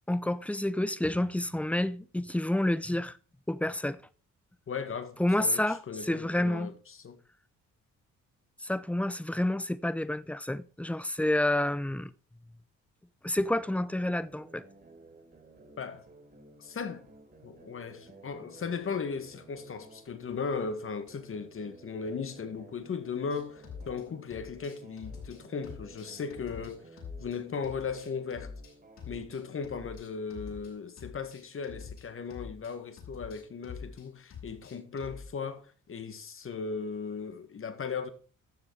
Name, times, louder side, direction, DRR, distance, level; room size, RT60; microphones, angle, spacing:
voice 1, 0.1-3.2 3.5-4.0 5.2-6.7 8.6-12.1 13.2-14.6, left 1 dB, 5° left, 0.7 m, -29 dB
voice 2, 4.7-7.2 15.8-16.0 16.6-17.1 17.4-26.9 27.2-28.5 29.1-38.1, left 5 dB, 45° left, 1.9 m, -37 dB
sound 1, 13.6-29.6, right 3 dB, 30° right, 3.3 m, -55 dB
sound 2, 23.3-24.0 24.3-27.4 27.6-30.7 31.0-35.3, left 6 dB, 65° left, 6.0 m, -46 dB
12.5 x 7.2 x 4.9 m
cardioid pair, 90°, 30 cm